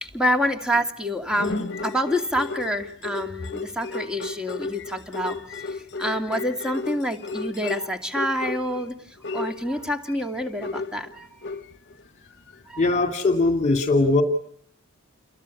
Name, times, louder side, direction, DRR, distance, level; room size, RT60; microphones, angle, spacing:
voice 1, 0.0-5.4 5.7-8.9 9.3-11.3 12.7-12.8, equal, 5° right, 5 dB, 2.6 m, -27 dB
sound 1, 1.3-8.9 9.2-12.0 12.5-12.6, left 3 dB, 55° left, 1.2 m, -33 dB
voice 2, 12.8-14.2, left 3 dB, 35° left, 6 dB, 2.5 m, -20 dB
29.5 x 22.5 x 8.6 m, 0.64 s
head